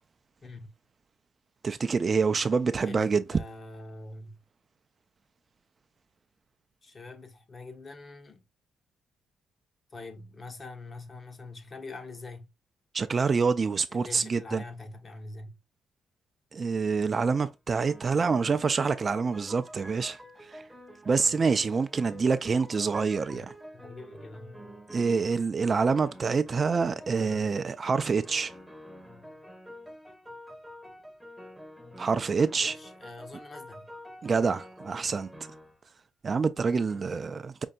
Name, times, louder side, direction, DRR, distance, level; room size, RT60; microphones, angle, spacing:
voice 1, 1.6-3.4 12.9-14.6 16.5-20.2 20.5-20.6 21.1-23.5 24.9-28.5 32.0-32.8 34.2-35.3 36.2-37.6, right 5 dB, 40° right, 0.4 m, -26 dB
voice 2, 2.8-4.4 6.8-8.4 9.9-12.5 13.9-15.6 23.3-23.5 23.7-24.5 27.2-27.5 32.6-33.9, left 2 dB, 35° left, 0.9 m, -44 dB
sound 1, 17.2-17.5 17.8-25.4 25.8-27.5 27.9-35.8 36.9-37.0, equal, ahead, 0.8 m, -48 dB
5.3 x 2.6 x 2.3 m
cardioid pair, 90°, 0 cm